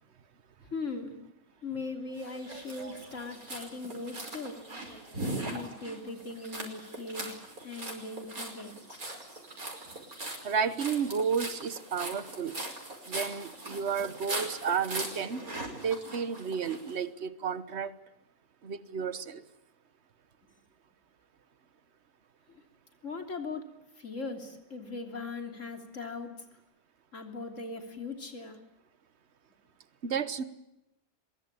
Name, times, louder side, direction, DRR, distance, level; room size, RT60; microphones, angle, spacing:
voice 1, 0.7-1.1 1.6-4.6 5.2-7.3 7.6-9.0 22.5-22.6 23.0-26.3 27.1-28.6, left 3 dB, 55° left, 5 dB, 3.6 m, -39 dB
sound 1, 2.2-16.9, right 2 dB, 75° right, 5.8 m, -40 dB
voice 2, 10.4-12.5 13.1-15.4 15.8-17.9 18.6-19.4 30.0-30.4, right 6 dB, 50° right, 14 dB, 1.5 m, -32 dB
23.5 x 22.5 x 8.9 m, 0.90 s
omnidirectional pair, 1.5 m